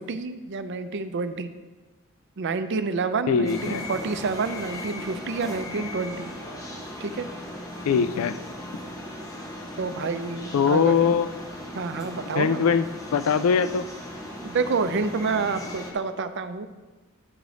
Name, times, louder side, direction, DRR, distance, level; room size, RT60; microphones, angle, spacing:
voice 1, 0.0-1.5 2.4-6.3 7.0-7.3 9.8-10.9 11.7-12.6 14.4-16.7, right 4 dB, 55° right, 10 dB, 0.5 m, -28 dB
voice 2, 3.3-3.8 7.9-8.4 10.5-11.3 12.3-12.8 13.1-13.9, left 6 dB, 90° left, 13 dB, 0.4 m, -21 dB
sound 1, 3.4-15.9, left 1 dB, 15° left, 0.8 m, -37 dB
9.6 x 4.9 x 4.0 m, 1.2 s
head